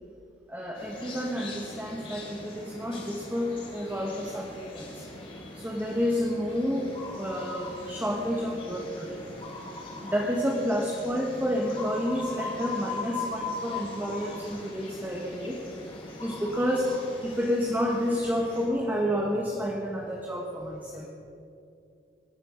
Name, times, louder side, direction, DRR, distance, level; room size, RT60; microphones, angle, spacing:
voice 1, 0.5-5.1 5.6-9.2 10.0-15.6 16.2-17.0 17.2-21.1, equal, 10° right, -2 dB, 1.3 m, -30 dB
sound 1, 0.7-18.7, left 3 dB, 30° left, 4.1 m, -40 dB
21.5 x 10.0 x 5.9 m, 2.7 s
head